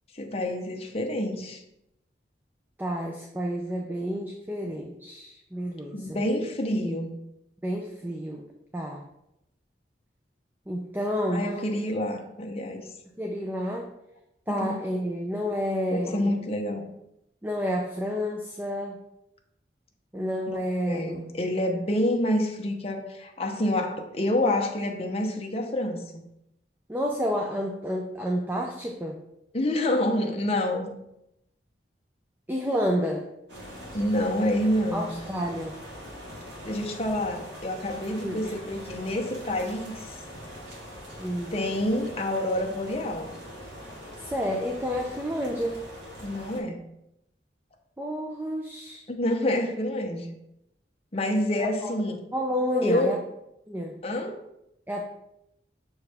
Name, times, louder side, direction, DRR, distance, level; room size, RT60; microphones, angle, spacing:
voice 1, 0.1-1.6 5.9-7.1 11.3-12.9 14.5-14.7 15.9-16.8 20.5-20.6 20.9-26.2 29.5-30.9 33.9-35.2 36.6-40.1 41.5-43.3 46.2-46.8 49.1-50.3 51.1-52.2 52.8-53.2 54.0-54.4, left 1 dB, 35° left, 2 dB, 0.8 m, -27 dB
voice 2, 2.8-6.2 7.6-9.0 10.7-11.5 13.2-13.9 14.5-16.3 17.4-19.0 20.1-21.3 26.9-29.2 32.5-33.3 34.9-35.8 38.2-38.5 41.2-41.5 44.2-45.9 48.0-49.0 51.8-51.9 52.3-53.2 53.7-54.0 54.9-55.0, equal, 10° right, 1 dB, 0.5 m, -30 dB
sound 1, 33.5-46.6, equal, 75° right, 2.1 m, -42 dB
6.5 x 4.7 x 3.4 m, 0.84 s
head